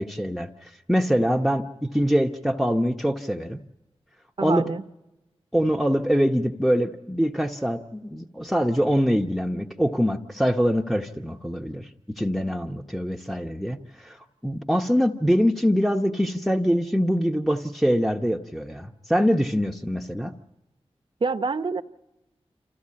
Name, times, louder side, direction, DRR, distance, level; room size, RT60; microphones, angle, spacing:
voice 1, 0.0-3.6 4.4-4.7 5.5-20.3, equal, ahead, 4 dB, 0.8 m, -24 dB
voice 2, 4.4-4.8 21.2-21.8, right 4 dB, 50° right, 8 dB, 0.8 m, -26 dB
27.5 x 15.0 x 8.6 m, 1.0 s
wide cardioid pair, 55°, 11 cm